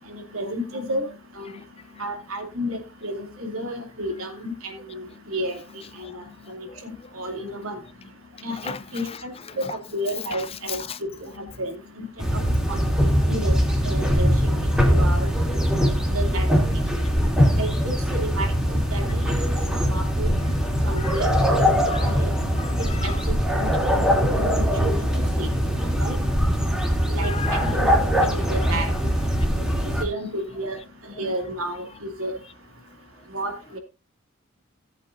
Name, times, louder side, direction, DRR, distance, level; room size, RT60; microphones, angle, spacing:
voice 1, 0.1-1.1 1.4-1.5 2.0-5.6 6.0-6.2 6.5-7.8 8.4-10.8 11.2-12.1 12.3-12.4 12.7-12.8 13.3-13.5 13.8-14.6 14.9-15.3 16.1-16.8 17.5-17.9 18.2-18.5 18.9-19.0 19.8-20.3 20.8-22.3 23.0-23.1 23.6-25.0 25.4-25.5 26.0-26.1 27.1-27.9 28.3-28.9 30.0-30.8 31.2-32.3 33.3-33.8, right 1 dB, 80° right, 2.8 m, -31 dB
voice 2, 8.5-9.8 10.1-11.0 20.4-21.5 21.9-22.1 22.5-23.5 27.2-27.9 28.2-29.0, left 6 dB, 25° left, 0.5 m, -37 dB
sound 1, 12.2-30.0, equal, 5° right, 2.4 m, -22 dB
17.5 x 8.0 x 2.6 m
head